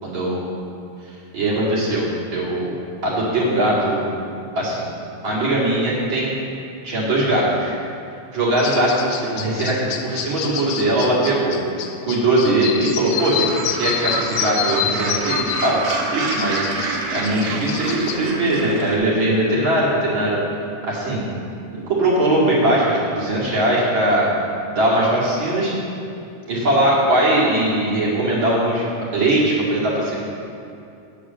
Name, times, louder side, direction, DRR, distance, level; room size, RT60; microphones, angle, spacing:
voice 1, 0.0-0.4 1.3-2.1 2.3-2.7 3.0-4.1 4.5-4.8 5.2-6.3 6.8-7.7 8.3-11.5 12.0-15.8 16.1-16.7 17.1-20.4 20.8-21.3 21.7-24.3 24.7-25.8 26.5-30.2, right 1 dB, 40° right, -6 dB, 2.7 m, -20 dB
sound 1, 8.6-18.2, left 9 dB, 90° left, 2.3 m, -28 dB
Gull seagull, 13.1-19.0, right 3 dB, 75° right, 2.5 m, -27 dB
8.5 x 8.2 x 7.5 m, 2.6 s
omnidirectional pair, 3.6 m